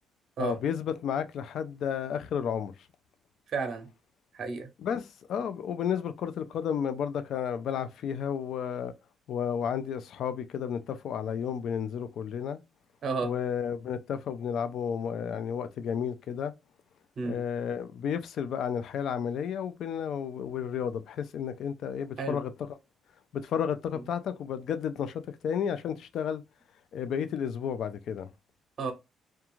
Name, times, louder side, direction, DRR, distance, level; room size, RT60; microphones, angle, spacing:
voice 1, 0.4-2.7 4.8-8.9 9.3-12.6 13.2-16.5 17.2-22.5 23.3-26.4 26.9-28.3, left 8 dB, 70° left, 0.3 m, -32 dB
voice 2, 3.5-3.9 4.3-4.7 13.0-13.4 17.2-17.4 22.2-22.4 28.8-28.9, right 4 dB, 55° right, 0.6 m, -32 dB
2.4 x 2.2 x 2.9 m
cardioid pair, 95°, 0 cm